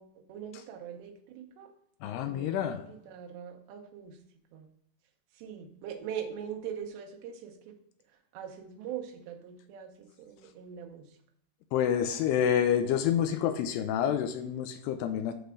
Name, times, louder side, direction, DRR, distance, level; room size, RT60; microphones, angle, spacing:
voice 1, 0.0-1.7 2.0-4.2 4.5-4.7 5.4-7.8 8.3-11.1, right 8 dB, 85° right, 4 dB, 3.1 m, -42 dB
voice 2, 2.0-2.8 11.7-15.3, left 9 dB, 85° left, 8 dB, 2.5 m, -28 dB
8.0 x 3.3 x 6.2 m, 0.69 s
omnidirectional pair, 4.9 m